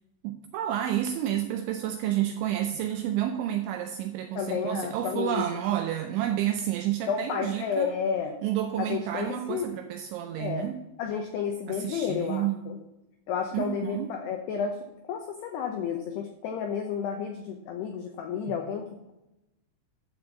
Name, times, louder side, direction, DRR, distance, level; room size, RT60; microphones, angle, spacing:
voice 1, 0.2-7.9 8.4-10.8 11.7-12.6 13.5-14.2, right 11 dB, 85° right, 6 dB, 2.7 m, -30 dB
voice 2, 4.3-5.8 7.1-8.4 8.8-9.7 10.4-10.7 11.0-12.8 13.3-14.8 15.0-19.1, left 7 dB, 90° left, 3 dB, 2.3 m, -31 dB
12.0 x 5.2 x 7.1 m, 0.91 s
omnidirectional pair, 5.9 m